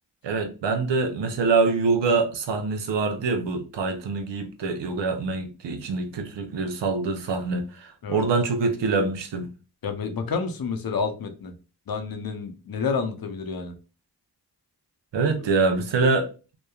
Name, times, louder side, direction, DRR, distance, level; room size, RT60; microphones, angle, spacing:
voice 1, 0.2-9.5 15.1-16.3, right 4 dB, 85° right, 0.7 m, -25 dB
voice 2, 9.8-11.5 11.9-13.7, left 5 dB, 55° left, 0.6 m, -29 dB
3.0 x 2.2 x 2.2 m
cardioid pair, 50°, 42 cm